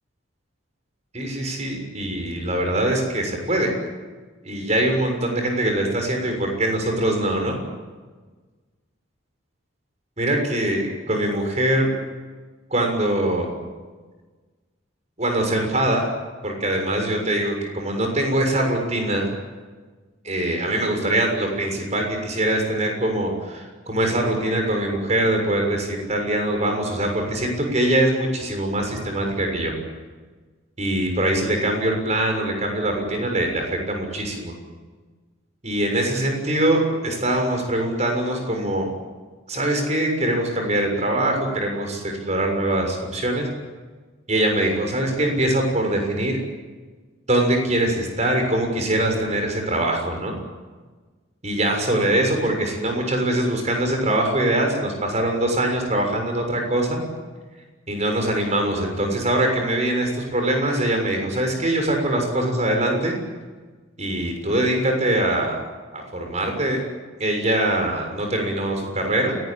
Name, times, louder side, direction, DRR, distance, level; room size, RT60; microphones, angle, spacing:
voice 1, 1.1-3.7 4.4-7.6 10.2-11.9 12.7-13.5 15.2-16.1 16.4-19.3 20.2-29.7 30.8-34.5 35.6-38.9 39.5-43.5 44.3-46.4 47.3-50.3 51.4-57.0 57.9-63.1 64.0-65.6 65.9-66.8 67.2-69.3, right 1 dB, 35° right, 3 dB, 6.7 m, -23 dB
30.0 x 19.0 x 8.9 m, 1.4 s
head